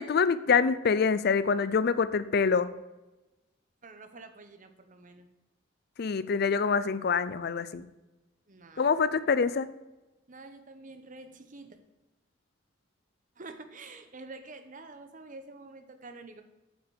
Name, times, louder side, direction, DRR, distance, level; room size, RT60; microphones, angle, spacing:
voice 1, 0.0-2.7 6.0-7.8 8.8-9.7, left 5 dB, 55° left, 15 dB, 0.5 m, -25 dB
voice 2, 3.8-5.3 8.5-8.9 10.3-11.8 13.4-16.4, right 3 dB, 40° right, 8 dB, 1.0 m, -47 dB
8.8 x 5.9 x 6.5 m, 1.0 s
head